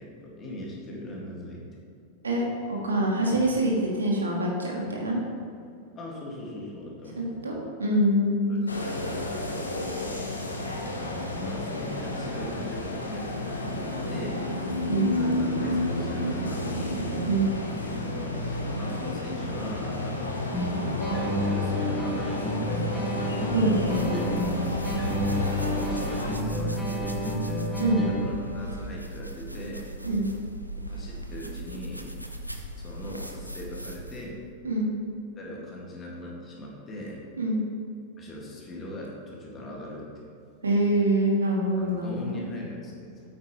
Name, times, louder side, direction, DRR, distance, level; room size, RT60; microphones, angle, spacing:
voice 1, 0.0-1.6 6.0-7.6 8.5-9.0 10.9-13.7 14.1-14.5 15.2-17.1 18.0-20.4 21.3-23.2 25.4-27.7 28.0-29.9 30.7-32.1 32.8-34.4 35.4-37.2 38.2-40.1 41.8-43.2, left 1 dB, 25° left, -3 dB, 2.2 m, -40 dB
voice 2, 2.7-5.2 7.2-8.5 14.9-15.1 17.2-17.5 23.5-24.3 27.8-28.0 30.0-30.3 34.6-34.9 37.4-37.6 40.6-42.4, right 1 dB, 75° right, -2 dB, 1.7 m, -25 dB
sound 1, 8.7-26.3, left 1 dB, 80° left, 1.0 m, -31 dB
sound 2, 20.5-28.5, equal, 5° left, 1.8 m, -30 dB
sound 3, 23.3-34.3, right 1 dB, 90° right, 0.7 m, -38 dB
8.9 x 8.6 x 3.2 m, 2.5 s
figure-of-eight pair, 90°, 0 cm